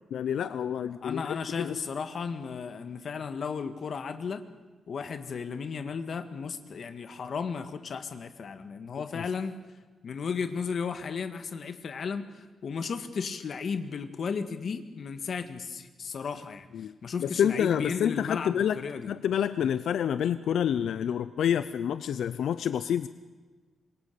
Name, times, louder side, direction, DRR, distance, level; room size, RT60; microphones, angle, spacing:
voice 1, 0.1-1.2 1.6-1.8 9.1-9.2 16.7-16.9 17.2-23.1, left 9 dB, 80° left, 13 dB, 0.7 m, -28 dB
voice 2, 1.0-4.4 4.9-9.6 10.0-19.1, left 5 dB, 50° left, 9 dB, 1.8 m, -34 dB
26.5 x 23.0 x 6.9 m, 1.3 s
wide cardioid pair, 170°, 0 cm